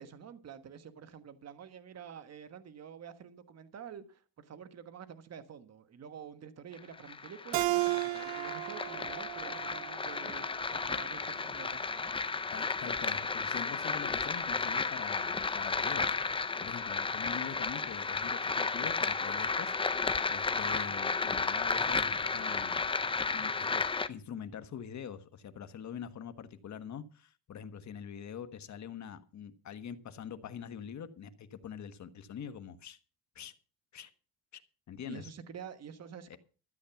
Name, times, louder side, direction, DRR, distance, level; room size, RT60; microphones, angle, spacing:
voice 1, 0.0-12.1 35.0-36.4, right 7 dB, 40° right, 1.4 m, -48 dB
sound 1, 6.7-24.1, left 4 dB, 15° left, 0.5 m, -33 dB
Keyboard (musical), 7.5-10.8, right 19 dB, 60° right, 0.7 m, -34 dB
voice 2, 12.5-23.0 23.3-33.0 33.3-33.5 33.9-34.1 34.5-34.6 34.9-35.3 36.3-36.4, left 8 dB, 40° left, 1.3 m, -44 dB
13.5 x 8.6 x 5.8 m
cardioid pair, 130°, 42 cm